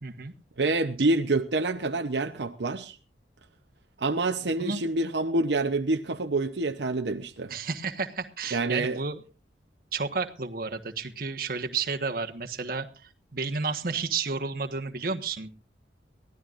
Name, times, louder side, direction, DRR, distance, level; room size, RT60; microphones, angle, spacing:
voice 1, 0.0-0.3 4.6-4.8 7.5-9.2 9.9-15.5, right 4 dB, 55° right, 1.4 m, -31 dB
voice 2, 0.6-3.0 4.0-7.5 8.5-9.0, right 2 dB, 80° right, 0.8 m, -27 dB
23.0 x 16.0 x 2.6 m
head